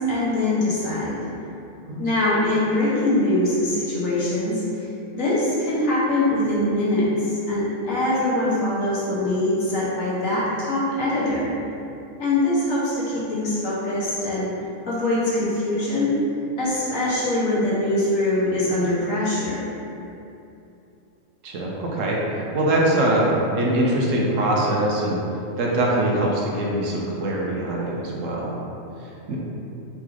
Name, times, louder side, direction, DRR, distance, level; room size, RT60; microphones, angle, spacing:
voice 1, 0.1-1.2 2.0-4.9 5.1-11.5 12.2-14.5 14.9-16.1 16.6-19.7, left 1 dB, 70° left, -8 dB, 1.5 m, -23 dB
voice 2, 21.4-22.2 22.5-25.2 25.6-28.5 29.3-29.4, right 1 dB, 70° right, -3 dB, 1.0 m, -22 dB
4.0 x 3.2 x 3.6 m, 2.8 s
omnidirectional pair, 1.5 m